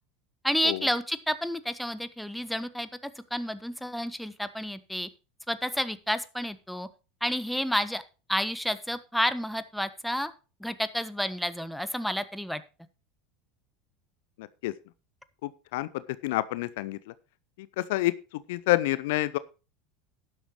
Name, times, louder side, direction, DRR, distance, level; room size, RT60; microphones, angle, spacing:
voice 1, 0.4-5.1 5.5-6.9 7.2-8.0 8.3-10.3 10.6-12.6, equal, ahead, 13 dB, 1.1 m, -30 dB
voice 2, 14.4-14.7 15.4-15.9 16.2-17.0 17.8-18.1 18.5-19.4, left 17 dB, 65° left, 17 dB, 0.5 m, -28 dB
12.0 x 10.5 x 3.1 m, 0.32 s
figure-of-eight pair, 75°, 0 cm